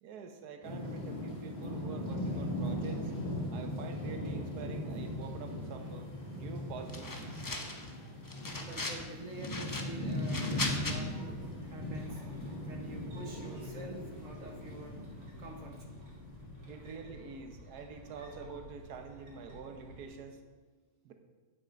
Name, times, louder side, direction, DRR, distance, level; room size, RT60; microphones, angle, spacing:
voice 1, 0.0-3.1 3.5-6.1 6.4-7.5 16.7-20.4 21.0-21.1, right 5 dB, 70° right, 6 dB, 1.4 m, -46 dB
sound 1, 0.6-17.4, left 1 dB, 50° left, 2.7 m, -39 dB
sound 2, 6.9-7.9 8.3-9.0 9.4-11.0, left 2 dB, 25° left, 0.5 m, -38 dB
voice 2, 8.5-12.2 12.6-15.0 15.4-16.0 16.7-16.8, right 2 dB, 55° right, 2 dB, 1.3 m, -48 dB
sound 3, 10.6-20.1, equal, 90° right, 3.2 m, -52 dB
8.8 x 8.1 x 5.2 m, 1.3 s
omnidirectional pair, 1.8 m